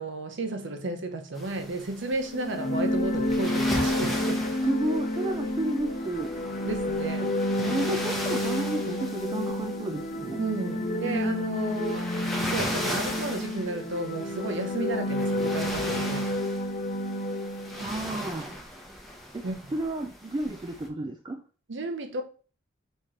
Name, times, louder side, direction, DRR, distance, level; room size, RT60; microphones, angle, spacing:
voice 1, 0.0-4.6 6.7-7.4 10.4-12.1 12.4-16.4 19.4-19.6 21.7-22.2, right 2 dB, 65° right, 0.8 m, -33 dB
sound 1, 1.3-20.9, equal, ahead, 0.8 m, -38 dB
sound 2, 2.3-18.0, left 1 dB, 40° left, 0.5 m, -30 dB
voice 2, 4.6-6.3 7.6-10.4 17.8-18.6 19.3-19.5 19.7-21.4, right 1 dB, 25° right, 0.4 m, -32 dB
sound 3, 5.9-6.1 6.9-7.1 7.9-8.1 8.9-9.1 9.9-10.1 10.9-11.2, equal, 85° left, 1.0 m, -47 dB
4.3 x 3.1 x 3.7 m
head